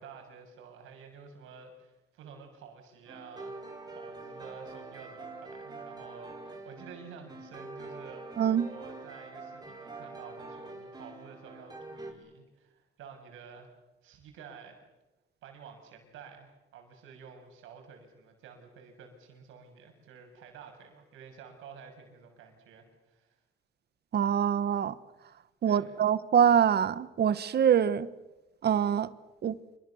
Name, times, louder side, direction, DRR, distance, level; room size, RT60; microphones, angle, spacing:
voice 1, 0.0-13.7 14.0-14.8 15.4-23.4 25.6-26.0, right 6 dB, 90° right, 6.8 m, -51 dB
sound 1, 3.1-12.1, right 3 dB, 20° right, 5.4 m, -45 dB
voice 2, 8.4-8.7 24.1-24.9 25.6-28.1 28.6-29.1 29.4-29.6, right 8 dB, 55° right, 1.3 m, -24 dB
28.0 x 26.0 x 7.2 m
cardioid pair, 90°, 20 cm